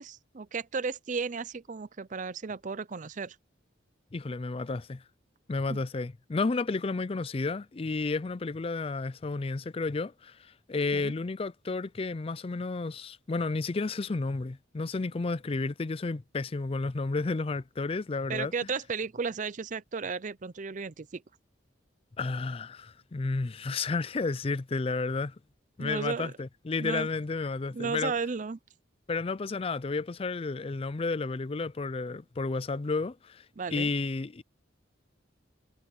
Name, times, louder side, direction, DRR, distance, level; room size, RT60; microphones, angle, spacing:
voice 1, 0.0-3.4 5.7-5.8 10.9-11.1 18.3-21.2 25.8-26.3 26.8-27.1 27.7-28.6 33.6-33.9, right 5 dB, 40° right, 0.5 m, -34 dB
voice 2, 4.1-5.0 5.5-18.5 22.2-25.4 25.8-28.1 29.1-34.4, left 3 dB, 30° left, 0.4 m, -32 dB
head